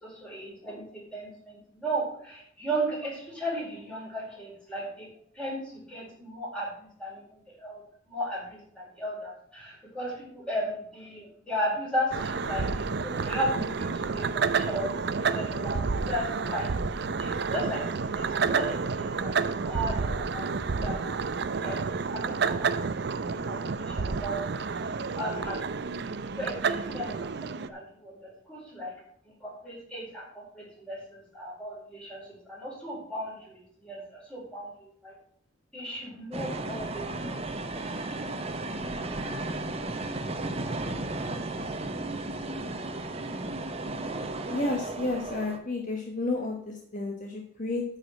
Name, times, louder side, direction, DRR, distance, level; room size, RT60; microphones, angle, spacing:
voice 1, 0.0-5.1 5.3-7.8 8.1-15.8 16.1-16.7 17.2-20.5 20.8-21.1 21.6-22.9 23.5-24.4 24.7-25.8 26.4-28.9 29.2-35.1 35.7-37.4, right 1 dB, 5° left, -5 dB, 4.4 m, -35 dB
sound 1, 12.1-27.7, right 5 dB, 55° right, 0.5 m, -30 dB
sound 2, 36.3-45.6, right 2 dB, 30° right, 0.8 m, -34 dB
voice 2, 44.5-47.8, left 2 dB, 40° left, 1 dB, 1.1 m, -31 dB
9.2 x 5.0 x 7.6 m, 0.64 s
head